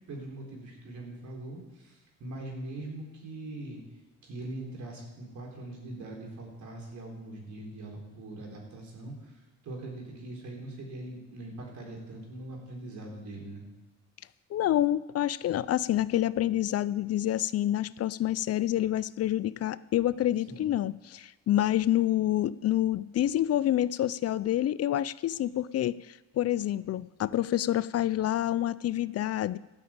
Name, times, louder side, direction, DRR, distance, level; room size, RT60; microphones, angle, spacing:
voice 1, 0.1-3.8 4.2-9.3 9.6-13.7 20.5-20.7, right 2 dB, 70° right, 0 dB, 4.1 m, -42 dB
voice 2, 14.5-29.6, left 12 dB, 55° left, 18 dB, 0.4 m, -28 dB
12.5 x 6.2 x 8.8 m, 1.2 s
cardioid pair, 90°, 30 cm